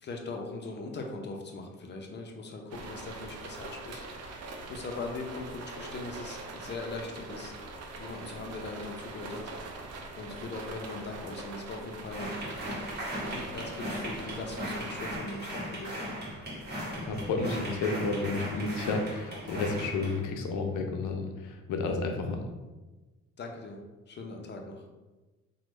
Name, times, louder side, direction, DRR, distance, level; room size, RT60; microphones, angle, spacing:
voice 1, 0.0-4.1 4.7-7.5 8.0-9.5 10.2-12.3 13.3-16.0 23.4-24.8, left 3 dB, 35° left, 2 dB, 0.6 m, -40 dB
sound 1, 2.7-15.2, right 3 dB, 60° right, 0.5 m, -42 dB
sound 2, 12.1-20.2, equal, 35° right, 1.3 m, -37 dB
voice 2, 17.0-22.4, left 3 dB, 85° left, 4 dB, 0.6 m, -31 dB
3.2 x 2.2 x 3.2 m, 1.2 s
cardioid pair, 90°, 30 cm